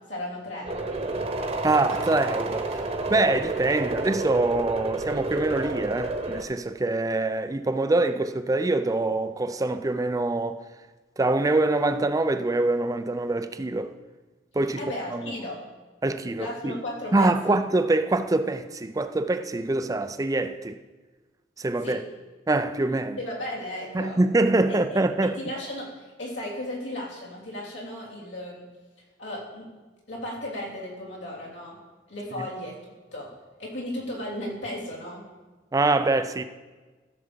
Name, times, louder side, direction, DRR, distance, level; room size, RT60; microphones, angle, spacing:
voice 1, 0.1-1.3 14.8-15.6 16.4-17.5 21.8-22.0 23.2-24.2 24.7-28.6 29.2-29.7 30.1-31.8 32.1-33.3 33.6-35.2, left 1 dB, 85° left, 3.2 m, -35 dB
sound 1, 0.6-6.4, right 2 dB, 35° right, 1.1 m, -30 dB
voice 2, 1.6-10.6 11.2-13.9 14.5-14.8 15.1-15.3 16.0-16.8 17.1-20.8 21.6-22.0 22.5-23.2 23.9-25.4 32.4-32.5 35.7-36.4, right 2 dB, 20° right, 0.4 m, -24 dB
14.5 x 6.9 x 5.2 m
head